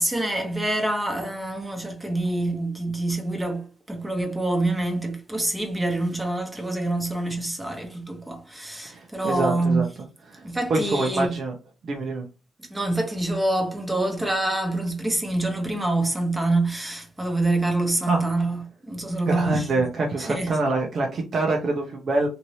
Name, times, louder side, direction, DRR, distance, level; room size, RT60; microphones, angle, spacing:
voice 1, 0.0-9.8 10.4-11.4 12.7-19.7 20.2-20.5, right 2 dB, 10° right, 0.9 m, -26 dB
voice 2, 8.8-9.9 10.3-11.5 11.8-12.3 18.1-18.3 19.2-22.3, right 2 dB, 50° right, 0.7 m, -25 dB
2.8 x 2.8 x 3.1 m
cardioid pair, 90°, 0 cm